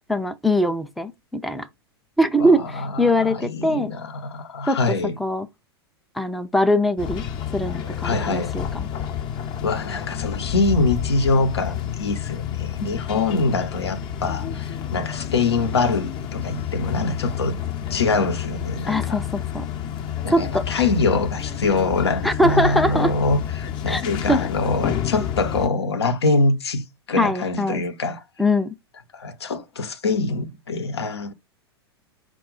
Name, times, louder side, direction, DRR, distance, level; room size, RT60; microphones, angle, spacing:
voice 1, 0.1-1.7 2.2-3.9 4.7-4.8 5.2-5.5 6.2-7.2 7.5-8.9 12.8-13.0 18.9-19.7 20.3-20.7 22.2-23.1 23.9-24.0 24.3-24.4 27.2-27.8 28.4-28.7, equal, ahead, 0.4 m, -22 dB
voice 2, 2.4-5.2 8.0-8.5 9.6-17.6 17.9-19.2 20.2-28.2 29.1-31.3, left 3 dB, 80° left, 0.8 m, -24 dB
sound 1, 7.0-25.7, left 9 dB, 35° left, 0.7 m, -29 dB
4.7 x 2.2 x 3.7 m
figure-of-eight pair, 100°, 14 cm